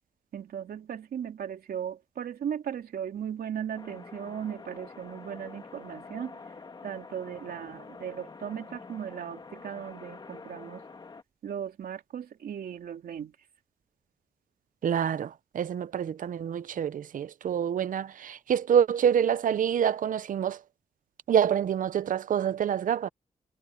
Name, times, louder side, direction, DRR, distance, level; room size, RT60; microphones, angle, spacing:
voice 1, 0.3-6.4 6.8-10.8 11.4-13.3, right 8 dB, 90° right, 3.1 m, -37 dB
sound 1, 3.7-11.2, left 4 dB, 30° left, 1.7 m, -46 dB
voice 2, 14.8-20.6 21.3-23.1, right 8 dB, 65° right, 0.6 m, -26 dB
wide cardioid pair, 160°, 15 cm